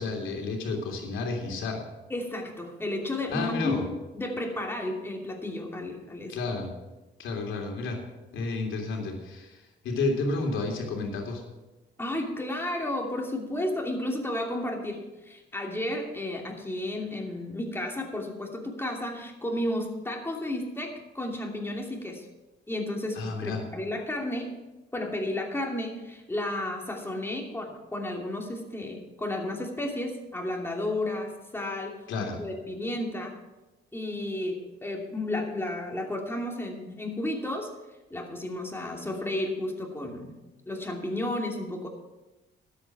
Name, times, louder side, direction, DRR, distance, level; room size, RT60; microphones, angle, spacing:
voice 1, 0.0-1.8 3.3-3.8 6.3-6.7 7.2-8.0 8.3-11.4 23.1-23.6 32.1-32.4, left 3 dB, 80° left, 1 dB, 3.1 m, -31 dB
voice 2, 2.1-3.9 4.1-6.4 12.0-22.3 22.7-24.5 24.9-33.3 33.9-37.7 38.1-40.3 40.7-41.9, left 1 dB, 10° left, 1 dB, 2.7 m, -32 dB
12.5 x 8.4 x 6.1 m, 1.1 s
cardioid pair, 90°, 20 cm